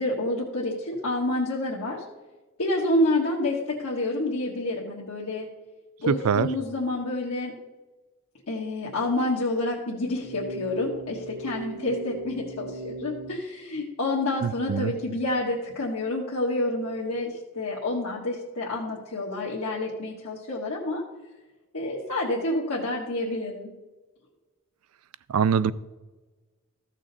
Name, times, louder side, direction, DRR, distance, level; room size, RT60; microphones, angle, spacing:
voice 1, 0.0-2.0 2.6-5.5 6.0-7.5 8.5-21.0 21.7-23.7, left 2 dB, 80° left, -5 dB, 1.4 m, -28 dB
voice 2, 6.1-6.5 14.4-14.9 25.3-25.7, right 6 dB, 80° right, 17 dB, 0.4 m, -23 dB
sound 1, 10.1-13.4, right 2 dB, 55° right, 0.8 m, -38 dB
14.0 x 6.2 x 4.0 m, 1.2 s
head